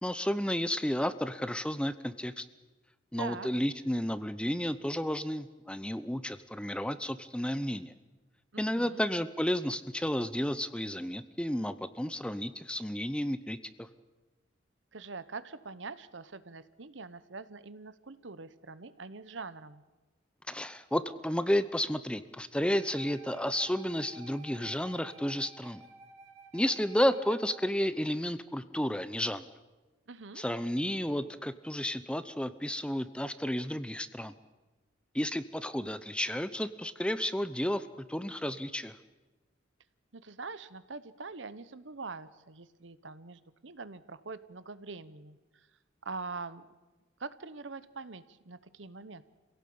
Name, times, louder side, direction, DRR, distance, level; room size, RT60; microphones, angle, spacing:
voice 1, 0.0-2.5 3.1-7.9 8.6-13.9 20.5-25.8 26.5-29.5 30.4-34.3 35.1-39.0, equal, 5° left, 13 dB, 0.7 m, -32 dB
voice 2, 3.2-3.5 8.5-9.0 14.9-19.8 30.1-30.4 40.1-45.7 46.0-46.7 47.2-49.2, right 4 dB, 70° right, 14 dB, 1.1 m, -44 dB
Wind instrument woodwind instrument, 22.7-27.7, right 3 dB, 35° right, 4.1 m, -53 dB
27.0 x 17.0 x 8.6 m, 1.2 s
head